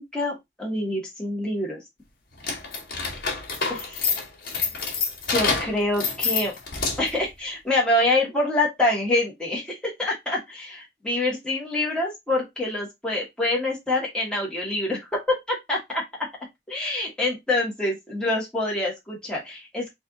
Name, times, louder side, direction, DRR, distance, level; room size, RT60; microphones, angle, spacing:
voice 1, 0.1-1.8 3.7-4.0 5.3-6.5 7.0-16.0 16.7-19.9, left 2 dB, 5° left, -4 dB, 1.3 m, -26 dB
sound 1, 2.4-7.2, left 5 dB, 55° left, 1.6 m, -27 dB
4.3 x 2.5 x 3.6 m, 0.18 s
head